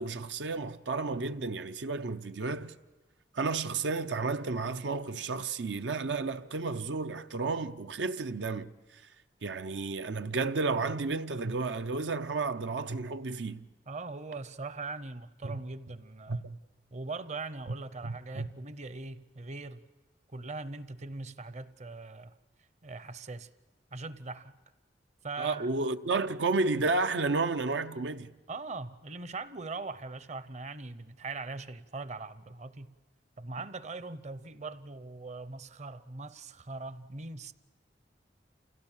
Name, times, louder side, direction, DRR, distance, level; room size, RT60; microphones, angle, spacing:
voice 1, 0.0-2.7 3.3-8.7 9.4-13.6 15.4-15.5 16.3-16.6 18.0-18.5 25.4-28.3, right 3 dB, 85° right, 0.7 m, -32 dB
voice 2, 13.9-16.4 16.9-19.8 20.3-22.3 22.8-23.5 23.9-24.6 25.2-25.7 28.5-33.0 33.4-37.5, right 3 dB, 40° right, 0.7 m, -41 dB
28.5 x 16.5 x 7.3 m
head